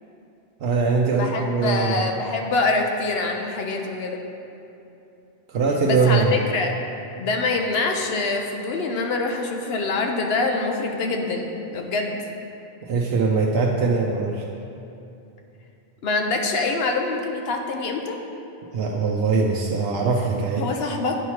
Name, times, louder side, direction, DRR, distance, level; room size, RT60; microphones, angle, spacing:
voice 1, 0.6-2.1 5.5-6.5 12.8-14.4 18.7-20.6, right 4 dB, 70° right, -2 dB, 0.8 m, -22 dB
voice 2, 1.1-4.2 5.8-6.7 7.2-12.2 16.0-18.2 20.6-21.2, left 3 dB, 75° left, 2 dB, 0.9 m, -25 dB
8.9 x 3.1 x 5.6 m, 2.8 s
omnidirectional pair, 1.1 m